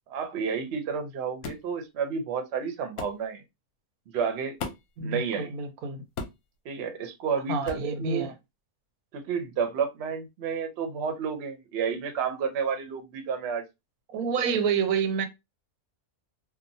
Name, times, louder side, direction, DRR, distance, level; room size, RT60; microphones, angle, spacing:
voice 1, 0.1-3.4 4.1-4.6 5.0-5.5 6.6-8.3 9.1-13.6, right 6 dB, 60° right, 0.8 m, -31 dB
sound 1, 1.4-1.7 3.0-3.2 4.6-5.0 6.2-6.5 7.7-7.9, left 4 dB, 90° left, 1.1 m, -36 dB
voice 2, 5.0-6.0 7.5-8.3 14.1-15.3, right 5 dB, 85° right, 1.1 m, -28 dB
2.8 x 2.2 x 2.6 m
omnidirectional pair, 1.5 m